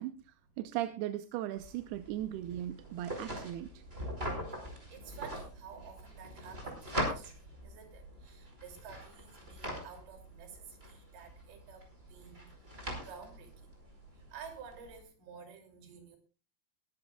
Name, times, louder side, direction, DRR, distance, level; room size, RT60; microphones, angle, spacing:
voice 1, 0.0-3.8, right 13 dB, 90° right, 9 dB, 2.8 m, -38 dB
sound 1, 1.6-15.0, equal, 15° right, 4.7 m, -43 dB
voice 2, 4.6-13.8 14.1-16.2, right 6 dB, 75° right, 4 dB, 4.9 m, -52 dB
21.5 x 13.5 x 2.4 m, 0.34 s
omnidirectional pair, 4.5 m